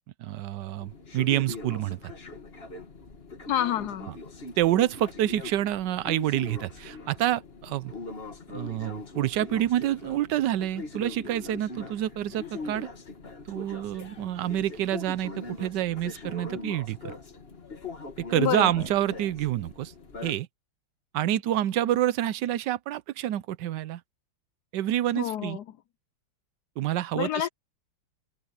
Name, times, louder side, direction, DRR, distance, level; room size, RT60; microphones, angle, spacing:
voice 1, 0.2-2.0 4.6-7.9 8.5-12.9 13.5-17.1 18.2-19.9 20.2-20.5 21.1-24.0 24.7-25.6 26.8-27.5, right 12 dB, 70° right, 1.2 m, -27 dB
sound 1, 0.8-20.3, left 3 dB, 30° left, 2.0 m, -41 dB
voice 2, 3.5-4.1 18.4-18.7 25.1-25.6 27.1-27.5, left 11 dB, 70° left, 1.0 m, -28 dB
omnidirectional pair, 2.1 m